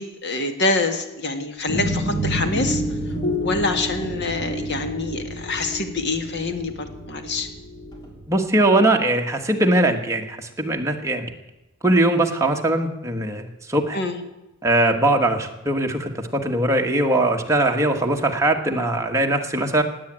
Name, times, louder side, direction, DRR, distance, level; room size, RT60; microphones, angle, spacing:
voice 1, 0.0-2.8 3.4-7.5 13.9-14.2, left 3 dB, 55° left, 7 dB, 1.7 m, -26 dB
sound 1, 1.7-8.2, equal, 20° left, 3.5 m, -28 dB
voice 2, 8.3-11.3 11.8-14.0 14.6-19.8, right 1 dB, 15° right, 2 dB, 1.5 m, -21 dB
17.0 x 9.1 x 8.9 m, 0.96 s
head